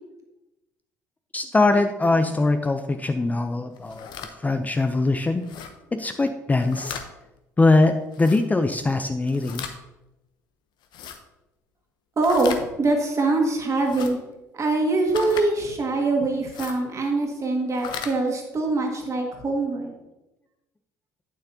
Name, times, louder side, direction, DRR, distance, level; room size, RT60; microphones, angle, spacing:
voice 1, 1.3-4.1 4.4-5.4 5.9-7.0 7.6-9.7, left 2 dB, 15° left, 8 dB, 0.5 m, -22 dB
sound 1, 3.8-4.3 5.4-5.7 6.5-7.1 8.1-8.4 9.3-9.8 10.8-11.2 12.2-12.6 13.8-14.1 15.1-15.5 16.4-16.8 17.7-18.1, left 7 dB, 60° left, 0.8 m, -36 dB
voice 2, 12.2-14.2 14.5-19.9, right 2 dB, 35° right, 2 dB, 1.9 m, -23 dB
8.7 x 7.3 x 2.8 m, 0.98 s
hypercardioid pair, 55°, 9 cm